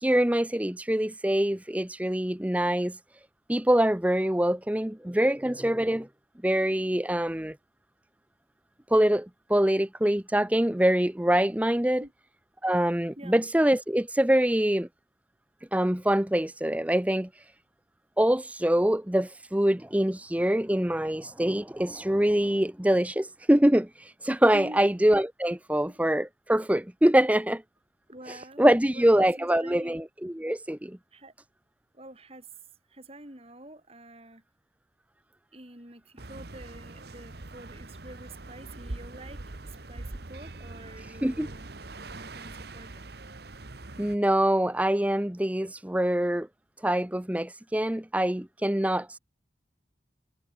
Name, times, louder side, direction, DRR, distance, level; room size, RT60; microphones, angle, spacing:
voice 1, 0.0-3.0 3.5-6.1 6.4-7.6 8.9-12.0 12.6-14.9 15.7-17.5 18.2-27.6 28.3-31.0 41.0-41.5 44.0-46.5 46.8-49.2, right 1 dB, 5° right, 0.7 m, -24 dB
voice 2, 13.2-13.5 24.5-24.8 25.9-26.0 28.1-30.0 31.1-31.3 31.9-32.5 32.9-34.4 35.5-41.7 42.0-43.1, right 1 dB, 30° right, 5.9 m, -47 dB
sound 1, 36.2-44.2, right 2 dB, 55° right, 1.3 m, -42 dB
head